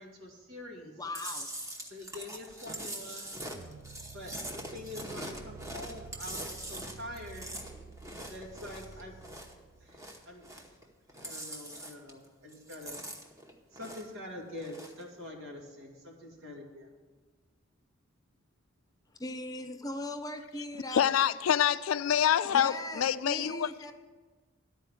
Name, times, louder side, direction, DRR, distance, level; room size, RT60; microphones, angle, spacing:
voice 1, 0.0-0.9 1.8-3.3 4.1-7.5 8.3-9.2 9.8-10.6 11.2-13.0 13.7-16.9, left 1 dB, 90° right, -1 dB, 2.1 m, -45 dB
voice 2, 0.8-1.5 19.2-21.1 22.4-23.9, left 1 dB, 20° left, 7 dB, 0.6 m, -39 dB
Chewing mastication, 1.1-9.6 9.9-10.8 11.1-12.2 12.5-14.2 14.5-15.0, right 1 dB, 15° right, 0.9 m, -42 dB
sound 1, 3.5-10.7, right 5 dB, 65° right, 0.5 m, -51 dB
voice 3, 20.9-23.7, left 9 dB, 85° left, 15 dB, 0.4 m, -26 dB
11.5 x 4.6 x 8.3 m, 1.3 s
head